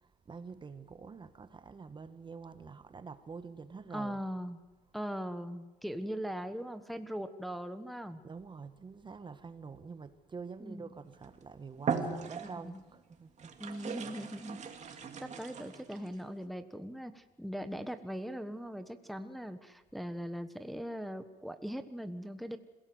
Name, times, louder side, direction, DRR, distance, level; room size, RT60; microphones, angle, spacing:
voice 1, 0.0-4.2 8.2-13.5, right 5 dB, 30° right, 1.3 m, -47 dB
voice 2, 3.9-4.6 4.9-8.2 10.6-10.9 12.4-12.8 13.6-14.6 15.2-22.6, equal, ahead, 1.2 m, -40 dB
sound 1, 11.1-11.4 11.8-12.8 13.4-16.1, right 6 dB, 45° right, 2.5 m, -38 dB
27.0 x 17.0 x 7.9 m
cardioid pair, 110°, 17 cm